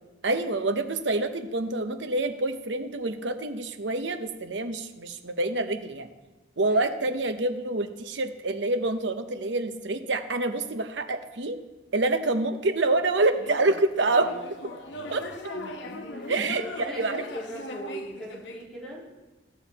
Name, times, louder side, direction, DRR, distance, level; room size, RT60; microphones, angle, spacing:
voice 1, 0.2-6.1 6.6-11.6 11.9-14.3 15.1-15.2 16.3-16.6 17.0-17.2, right 2 dB, 75° right, 8 dB, 0.9 m, -27 dB
sound 1, 13.3-18.6, left 2 dB, 75° left, 1.0 m, -39 dB
voice 2, 16.6-19.1, right 1 dB, ahead, -6 dB, 3.1 m, -40 dB
14.5 x 7.2 x 4.2 m, 1.1 s
head